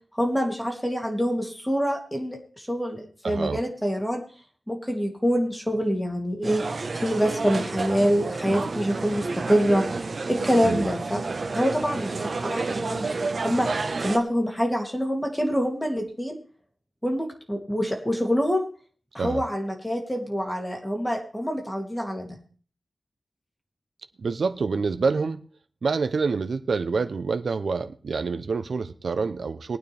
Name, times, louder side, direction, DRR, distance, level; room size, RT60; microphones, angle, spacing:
voice 1, 0.2-4.2 4.7-6.7 7.0-9.9 10.3-11.2 11.5-13.7 14.0-16.4 17.0-18.6 19.1-22.4, equal, 5° left, 1 dB, 2.8 m, -26 dB
voice 2, 3.2-3.6 10.6-10.9 19.2-19.4 24.2-25.4 25.8-29.8, right 4 dB, 75° right, 9 dB, 0.7 m, -27 dB
sound 1, 6.4-14.2, right 3 dB, 55° right, 1.2 m, -30 dB
20.0 x 9.2 x 3.5 m, 0.40 s
wide cardioid pair, 115°, 0 cm